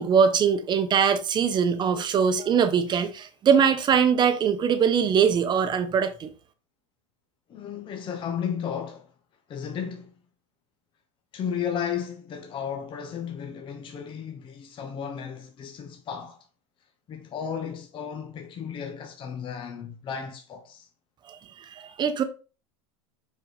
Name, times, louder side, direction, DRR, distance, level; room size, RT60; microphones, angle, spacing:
voice 1, 0.0-6.3 21.3-22.2, right 7 dB, 30° right, 1.0 m, -22 dB
voice 2, 7.5-9.1 9.5-10.1 11.3-16.4 17.1-20.9, left 7 dB, 35° left, 1.0 m, -34 dB
5.9 x 4.7 x 4.0 m
supercardioid pair, 120°, 16 cm